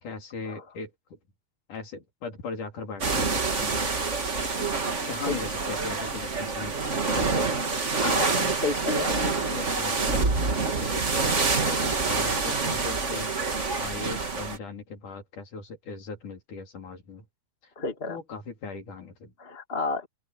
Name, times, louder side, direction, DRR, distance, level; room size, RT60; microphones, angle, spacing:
voice 1, 0.0-1.2 1.7-3.8 4.9-6.7 7.1-7.5 8.3-8.5 8.9-13.3 13.8-17.2 17.6-17.7 18.1-19.3, left 4 dB, 50° left, 5.0 m, -38 dB
sound 1, 3.0-14.6, right 4 dB, 50° right, 0.8 m, -27 dB
voice 2, 8.0-9.1 17.7-18.2 19.4-20.1, left 3 dB, 20° left, 1.5 m, -31 dB
open air
omnidirectional pair, 4.9 m